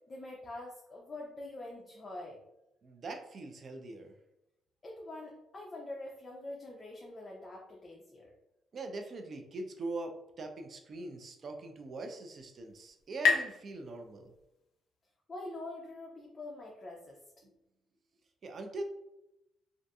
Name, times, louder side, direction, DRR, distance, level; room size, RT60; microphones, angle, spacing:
voice 1, 0.1-2.4 4.8-8.3 15.3-17.2, left 2 dB, 35° left, -2 dB, 0.5 m, -45 dB
voice 2, 2.8-4.1 8.7-14.3 17.4-17.5 18.4-18.8, right 2 dB, 50° right, 5 dB, 0.4 m, -42 dB
sound 1, 11.8-15.2, left 5 dB, 85° left, 0.4 m, -35 dB
2.6 x 2.5 x 2.3 m, 0.88 s
cardioid pair, 90°, 0 cm